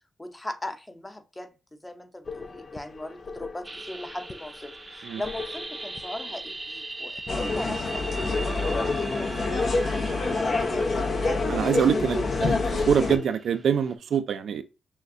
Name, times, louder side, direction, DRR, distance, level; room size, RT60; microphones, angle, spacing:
voice 1, 0.2-8.0 8.4-10.9, left 1 dB, 15° left, 0.7 m, -39 dB
sound 1, 2.3-13.3, left 4 dB, 45° left, 0.4 m, -38 dB
sound 2, 3.6-13.9, right 2 dB, 20° right, 0.6 m, -40 dB
sound 3, 7.3-13.2, left 3 dB, 60° left, 0.9 m, -27 dB
voice 2, 11.5-14.6, right 7 dB, 75° right, 0.4 m, -25 dB
6.3 x 2.3 x 2.7 m
cardioid pair, 90°, 0 cm